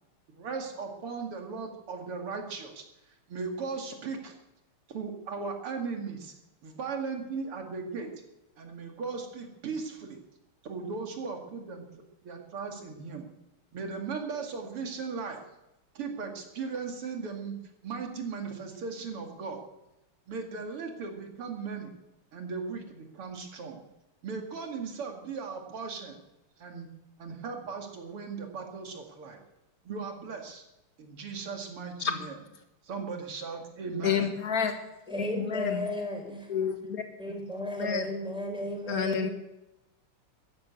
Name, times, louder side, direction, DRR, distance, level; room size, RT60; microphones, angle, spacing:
voice 1, 0.3-4.4 4.9-6.3 6.6-8.1 8.6-10.2 10.6-11.9 12.2-13.3 13.7-15.4 15.9-17.6 17.8-19.6 20.3-21.9 22.3-23.8 24.2-26.2 26.6-26.9 27.2-29.4 29.8-30.6 31.0-32.4 32.8-34.3, right 5 dB, 80° right, 3 dB, 3.2 m, -37 dB
voice 2, 34.0-34.8 35.2-35.8 36.5-36.7 37.8-38.0 38.9-39.3, left 7 dB, 45° left, 7 dB, 2.1 m, -29 dB
voice 3, 35.1-36.5 37.2-39.3, left 1 dB, ahead, 1 dB, 4.2 m, -34 dB
14.0 x 11.5 x 8.3 m, 0.93 s
omnidirectional pair, 2.4 m